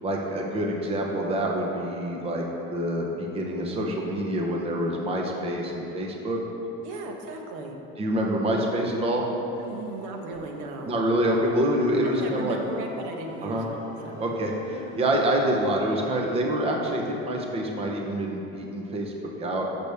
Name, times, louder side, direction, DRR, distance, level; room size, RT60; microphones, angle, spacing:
voice 1, 0.0-6.4 8.0-9.2 10.8-12.6 13.4-13.7 14.2-19.1 19.4-19.7, right 1 dB, 20° right, 0 dB, 0.7 m, -26 dB
voice 2, 6.8-7.8 9.6-11.0 12.0-14.3, right 2 dB, 85° right, 2 dB, 1.2 m, -36 dB
sound 1, 9.5-10.8 11.1-16.3, left 2 dB, 25° left, 1.6 m, -46 dB
13.0 x 6.8 x 3.4 m, 3.0 s
cardioid pair, 175°, 30 cm